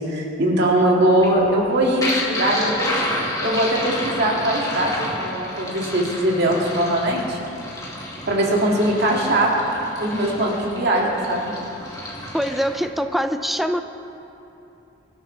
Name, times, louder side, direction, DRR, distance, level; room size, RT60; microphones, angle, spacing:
voice 1, 0.1-3.0 3.4-7.4 8.3-9.5 10.0-11.5, right 1 dB, 60° right, -2 dB, 2.4 m, -21 dB
sound 1, 1.1-12.9, left 1 dB, 20° left, 2.2 m, -30 dB
voice 2, 12.3-13.8, equal, ahead, 8 dB, 0.5 m, -23 dB
24.0 x 12.0 x 3.4 m, 2.9 s
head